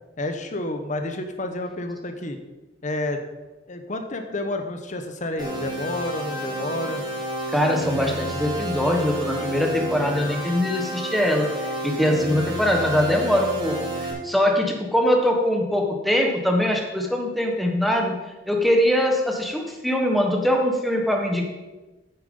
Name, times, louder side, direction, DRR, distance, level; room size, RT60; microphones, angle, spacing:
voice 1, 0.2-2.4 2.8-3.2 3.7-7.0, left 1 dB, 45° left, 6 dB, 1.1 m, -30 dB
sound 1, 5.4-14.1, right 1 dB, 25° right, 2.4 m, -30 dB
voice 2, 7.5-13.7 14.2-18.1 18.5-21.4, left 1 dB, ahead, 1 dB, 1.4 m, -22 dB
9.0 x 7.2 x 5.5 m, 1.1 s
head